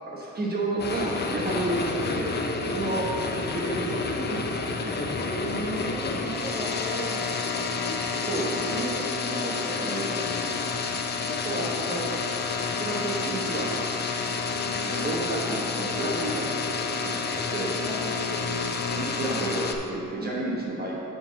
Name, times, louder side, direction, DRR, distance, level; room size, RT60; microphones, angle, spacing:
voice 1, 0.1-2.3 2.7-3.0 3.5-4.9 6.2-6.4 8.3-8.9 9.3-10.1 11.4-12.1 12.7-13.8 14.6-16.5 16.9-17.7 18.9-20.9, right 2 dB, 30° right, -4 dB, 1.2 m, -31 dB
sound 1, 0.8-19.8, left 4 dB, 35° left, 0.6 m, -29 dB
voice 2, 5.4-7.9 8.4-8.7 9.6-9.8 17.8-18.7 20.2-20.4, right 1 dB, 10° right, -4 dB, 1.3 m, -37 dB
7.0 x 3.8 x 6.5 m, 3.0 s
cardioid pair, 90°, 30 cm